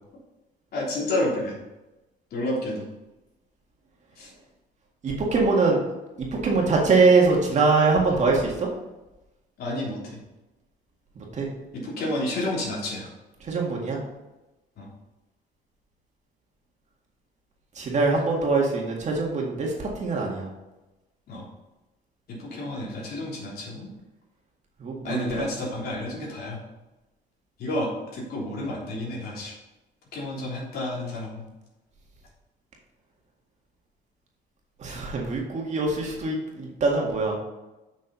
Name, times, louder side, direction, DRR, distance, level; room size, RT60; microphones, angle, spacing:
voice 1, 0.7-1.6 2.3-2.8 4.2-4.3 9.6-10.2 11.7-13.1 14.8-14.9 21.3-21.5 22.3-23.9 25.0-26.6 27.6-29.5 30.1-31.4, left 1 dB, 60° left, -5 dB, 3.4 m, -30 dB
voice 2, 5.0-5.8 6.2-8.7 11.2-11.5 13.5-14.0 17.8-20.5 24.8-25.2 34.8-37.4, right 3 dB, 40° right, -1 dB, 1.9 m, -23 dB
7.3 x 6.2 x 5.4 m, 1.0 s
cardioid pair, 150°, 18 cm